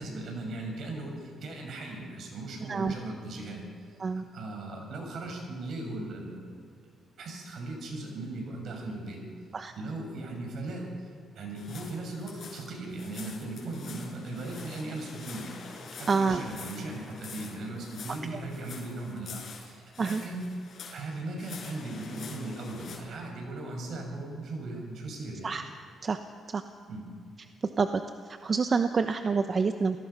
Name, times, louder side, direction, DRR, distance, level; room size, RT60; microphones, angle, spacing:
voice 1, 0.0-3.6 4.1-6.5 7.2-9.2 9.8-11.1 11.3-15.5 16.0-20.5 20.9-25.6 26.9-27.2, right 2 dB, 65° right, 2 dB, 6.3 m, -38 dB
sound 1, 11.6-23.0, left 5 dB, 55° left, 5.4 m, -46 dB
voice 2, 16.1-16.4 20.0-20.2 25.4-25.6 26.0-26.2 26.5-26.6 27.8-27.9 28.4-30.0, right 5 dB, 40° right, 8 dB, 0.9 m, -27 dB
28.0 x 18.0 x 5.7 m, 2.1 s
cardioid pair, 90°, 0 cm